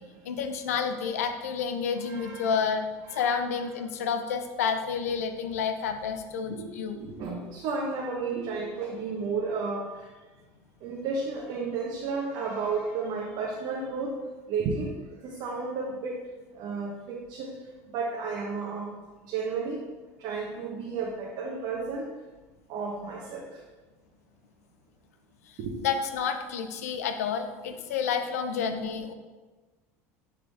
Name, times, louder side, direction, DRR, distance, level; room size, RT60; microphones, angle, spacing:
voice 1, 0.2-2.8 3.1-7.0 25.5-29.1, left 6 dB, 90° left, 8 dB, 0.7 m, -30 dB
voice 2, 2.0-2.5 3.1-3.3 6.5-6.7 6.9-9.9 10.8-14.1 14.5-14.9 15.2-16.1 16.5-17.5 17.9-18.9 19.2-19.8 20.2-22.0 22.7-23.4 25.6-25.8, right 4 dB, 60° right, -2 dB, 1.1 m, -32 dB
10.0 x 3.7 x 3.5 m, 1.3 s
supercardioid pair, 90°, 8 cm